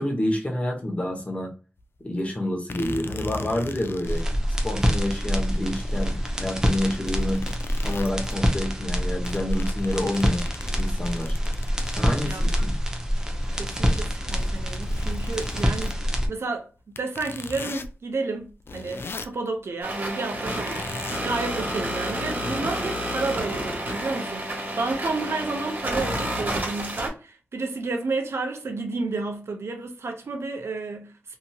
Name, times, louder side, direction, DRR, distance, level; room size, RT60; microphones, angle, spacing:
voice 1, 0.0-1.5 2.0-4.2 4.6-7.4 7.8-10.4 10.7-11.4 12.0-12.8, left 1 dB, 30° left, 0.9 m, -28 dB
sound 1, 1.8-1.9 2.7-4.2 5.1-5.2 5.5-8.4 8.9-12.7 13.1-16.0 16.9-17.9 18.4-19.4 20.6-21.2, left 3 dB, 55° left, 0.3 m, -38 dB
sound 2, 4.0-16.3, equal, 15° right, 0.7 m, -26 dB
voice 2, 12.2-12.7 13.5-16.0 16.3-20.9 21.2-31.1, right 3 dB, 70° right, 0.6 m, -31 dB
sound 3, 19.8-27.1, right 1 dB, 40° right, 1.4 m, -30 dB
2.8 x 2.7 x 2.2 m
wide cardioid pair, 90°, 5 cm